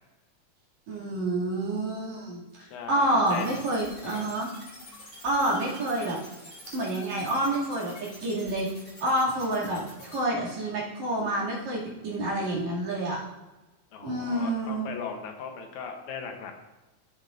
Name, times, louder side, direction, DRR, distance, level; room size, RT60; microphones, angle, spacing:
voice 1, 0.9-4.5 5.2-6.2 6.7-8.7 9.0-13.2 14.0-14.9, right 1 dB, 65° right, -6 dB, 3.9 m, -28 dB
voice 2, 2.6-3.5 4.0-4.3 13.9-16.5, left 6 dB, 75° left, 4 dB, 2.4 m, -38 dB
sound 1, 3.3-10.2, left 1 dB, 30° left, 3.6 m, -47 dB
14.5 x 7.4 x 2.6 m, 1.1 s
omnidirectional pair, 3.4 m